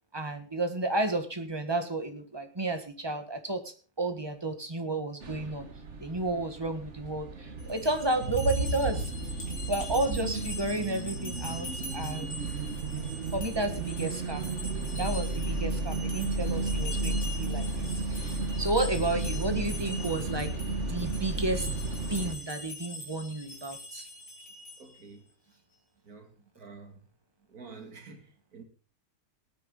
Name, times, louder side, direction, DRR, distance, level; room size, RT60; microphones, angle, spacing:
voice 1, 0.1-5.7 6.0-9.1 9.7-12.4 13.3-14.5 15.0-20.5 20.8-21.7 22.1-24.1, right 2 dB, 15° right, 1.5 m, -32 dB
sound 1, 5.2-22.3, right 3 dB, 50° right, 1.7 m, -33 dB
sound 2, 7.6-25.0, left 2 dB, 75° left, 3.6 m, -43 dB
voice 2, 24.8-25.3 26.1-27.0 27.5-28.6, right 4 dB, 65° right, 2.7 m, -49 dB
19.0 x 9.2 x 3.9 m
omnidirectional pair, 1.7 m